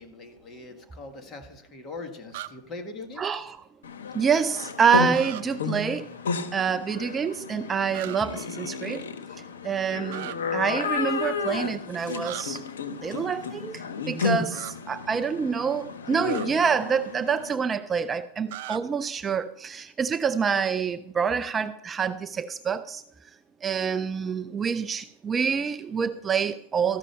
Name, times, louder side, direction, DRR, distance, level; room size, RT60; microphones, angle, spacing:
voice 1, 0.0-3.5, left 3 dB, 25° left, 5 dB, 1.8 m, -41 dB
sound 1, 2.3-2.5 5.1-5.4 7.9-8.2 10.1-10.4 12.2-12.4 14.5-14.7 16.2-16.5 18.5-18.8, right 15 dB, 65° right, 0.6 m, -37 dB
voice 2, 3.2-3.6 4.1-6.1 6.5-9.1 9.6-12.6 13.0-23.0 23.6-27.0, right 6 dB, 20° right, 12 dB, 0.4 m, -27 dB
sound 2, 3.8-17.6, left 5 dB, 90° left, 1.0 m, -32 dB
14.0 x 6.1 x 5.6 m, 0.78 s
hypercardioid pair, 130°, 0 cm